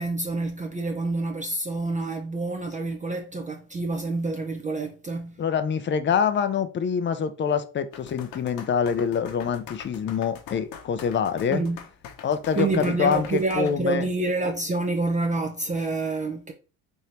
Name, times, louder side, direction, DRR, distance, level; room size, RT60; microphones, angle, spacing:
voice 1, 0.0-5.4 11.5-11.8 12.5-16.5, right 2 dB, 20° right, 0.6 m, -27 dB
voice 2, 5.4-11.6 12.2-14.1, left 7 dB, 30° left, 0.5 m, -25 dB
sound 1, 7.9-13.7, left 7 dB, 60° left, 0.9 m, -43 dB
3.4 x 2.7 x 4.2 m
supercardioid pair, 85°, 39 cm